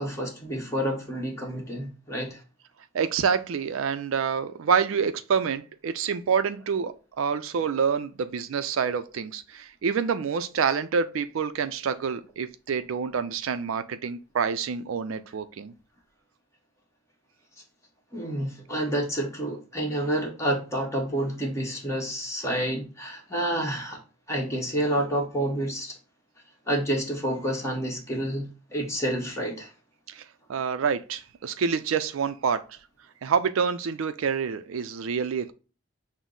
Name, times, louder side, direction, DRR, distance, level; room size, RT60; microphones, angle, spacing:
voice 1, 0.0-2.4 18.1-24.0 24.3-26.0 26.7-29.7, right 1 dB, 15° left, 1.2 m, -29 dB
voice 2, 2.9-15.7 30.1-30.2 30.5-32.8 33.2-35.5, right 6 dB, 70° right, 0.4 m, -27 dB
6.1 x 2.0 x 3.7 m
head